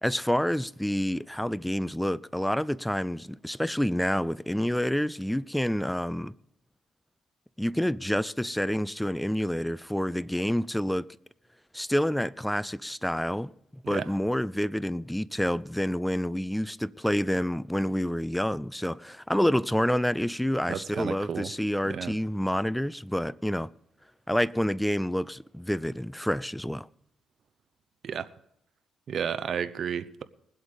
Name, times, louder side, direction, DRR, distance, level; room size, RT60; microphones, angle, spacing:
voice 1, 0.0-6.3 7.6-11.1 11.7-13.5 13.9-23.7 24.3-26.9, equal, 5° left, 0.4 m, -28 dB
voice 2, 13.8-14.2 20.7-21.5 21.9-22.2 28.0-28.3 29.1-30.2, right 7 dB, 55° right, 0.8 m, -32 dB
20.5 x 8.0 x 5.1 m
cardioid pair, 90°, 0 cm